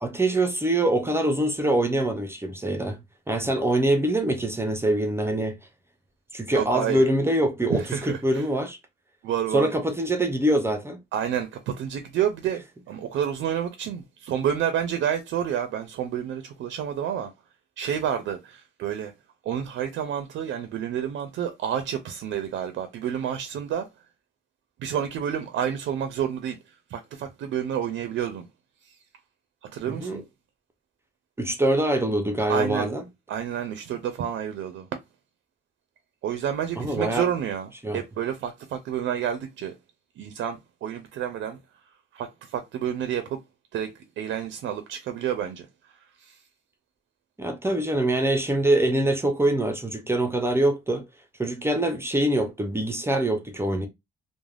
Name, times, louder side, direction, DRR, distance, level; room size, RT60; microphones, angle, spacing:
voice 1, 0.0-5.6 6.3-8.8 9.5-11.0 29.8-30.2 31.4-33.0 36.8-37.3 37.8-38.0 47.4-51.0 51.4-53.9, right 1 dB, 15° right, 0.4 m, -24 dB
voice 2, 6.5-7.0 7.7-8.5 9.2-9.7 11.1-17.3 17.8-19.1 19.4-23.9 24.8-28.5 28.8-29.0 29.6-30.2 32.5-32.9 33.3-34.9 36.2-39.7 40.2-41.6 42.1-43.4 43.7-46.4, right 9 dB, 85° right, 0.4 m, -29 dB
3.2 x 2.1 x 2.3 m
wide cardioid pair, 155°, 19 cm